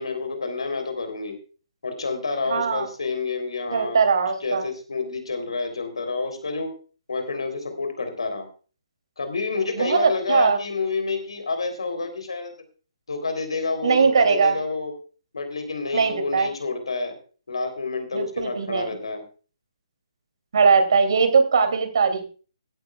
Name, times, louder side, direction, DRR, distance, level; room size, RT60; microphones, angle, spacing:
voice 1, 0.0-1.4 1.8-4.0 4.4-6.7 7.1-8.5 9.2-12.5 13.1-14.9 15.3-17.2 17.5-19.2, left 3 dB, 65° left, 7 dB, 3.5 m, -28 dB
voice 2, 2.5-2.9 3.7-4.6 9.7-10.6 13.8-14.6 15.9-16.5 18.1-18.9 20.5-22.3, right 5 dB, 55° right, 7 dB, 2.9 m, -20 dB
16.0 x 13.0 x 2.4 m, 0.38 s
figure-of-eight pair, 135°, 3 cm